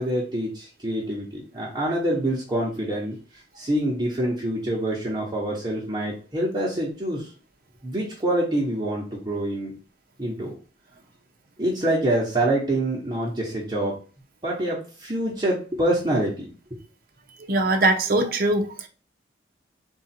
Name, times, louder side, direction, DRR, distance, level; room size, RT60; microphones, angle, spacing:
voice 1, 0.0-3.2 3.6-7.3 7.8-9.7 10.2-10.5 11.6-14.0 14.4-16.5, right 1 dB, 20° right, 1.1 m, -26 dB
voice 2, 17.5-18.9, right 2 dB, 50° right, 0.7 m, -21 dB
3.9 x 2.7 x 4.3 m
head